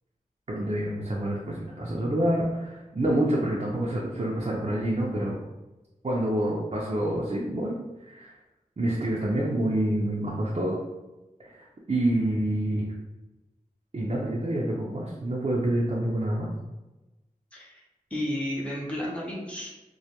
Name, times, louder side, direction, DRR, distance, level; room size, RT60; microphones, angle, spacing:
voice 1, 0.5-5.4 6.0-8.3 8.8-10.8 11.4-12.9 13.9-16.5, right 1 dB, 45° right, -4 dB, 0.4 m, -27 dB
voice 2, 17.5-17.8 18.1-19.7, left 1 dB, 10° left, -5 dB, 0.7 m, -32 dB
2.2 x 2.2 x 2.8 m, 1.0 s
wide cardioid pair, 50°, 15 cm